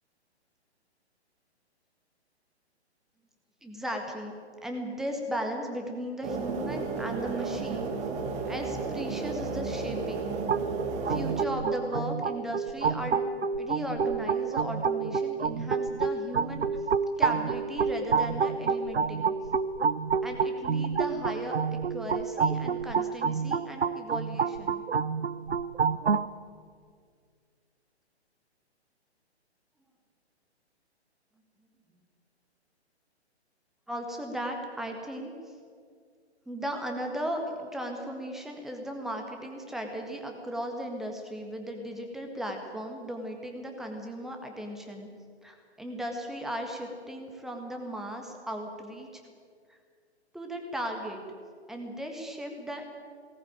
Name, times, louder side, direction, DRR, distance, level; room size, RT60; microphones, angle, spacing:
voice 1, 3.6-4.3 4.6-7.9 8.5-10.3 11.1-13.2 13.6-16.7 17.2-19.3 20.2-21.6 21.9-24.8 33.9-35.3 36.4-45.1 45.4-49.2 49.7-49.8 50.3-51.2 51.7-52.8, equal, ahead, 2 dB, 1.7 m, -36 dB
sound 1, 6.2-11.5, right 4 dB, 20° right, 1.7 m, -33 dB
sound 2, 10.5-26.3, right 5 dB, 70° right, 0.8 m, -28 dB
18.5 x 18.0 x 9.0 m, 2.1 s
figure-of-eight pair, 130°, 33 cm